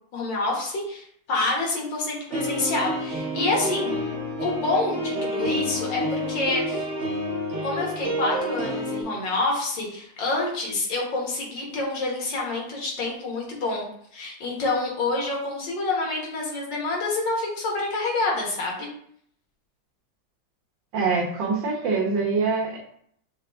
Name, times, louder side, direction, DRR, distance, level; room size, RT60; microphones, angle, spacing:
voice 1, 0.1-3.9 4.4-6.9 7.6-18.9, left 2 dB, 70° left, -2 dB, 1.9 m, -27 dB
sound 1, 2.3-9.0, equal, 45° right, 1.1 m, -29 dB
voice 2, 20.9-22.8, right 4 dB, 70° right, -5 dB, 1.6 m, -24 dB
6.6 x 2.4 x 3.4 m, 0.66 s
omnidirectional pair, 2.1 m